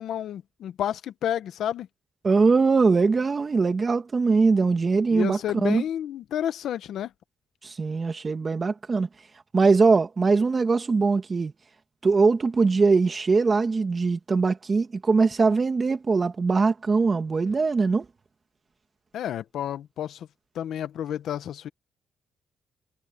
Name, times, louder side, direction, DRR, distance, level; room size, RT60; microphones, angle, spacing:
voice 1, 0.0-1.9 5.1-7.1 19.1-20.3 20.5-21.7, left 10 dB, 75° left, 1.2 m, -30 dB
voice 2, 2.2-5.8 7.6-9.1 9.5-11.5 12.0-18.0, right 4 dB, 35° right, 1.8 m, -21 dB
cardioid pair, 90°, 0 cm